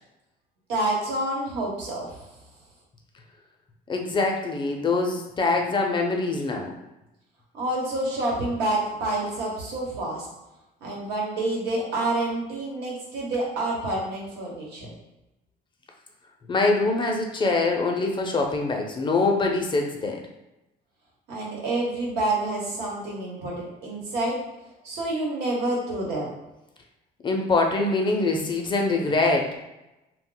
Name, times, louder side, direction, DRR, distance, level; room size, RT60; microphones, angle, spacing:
voice 1, 0.7-2.2 7.5-10.3 10.8-14.9 21.3-24.4 24.8-26.4, right 2 dB, 80° right, -3 dB, 1.1 m, -28 dB
voice 2, 3.9-6.7 16.5-20.2 27.2-29.6, left 3 dB, 30° left, 1 dB, 0.5 m, -24 dB
2.3 x 2.1 x 3.8 m, 0.96 s
cardioid pair, 110°, 17 cm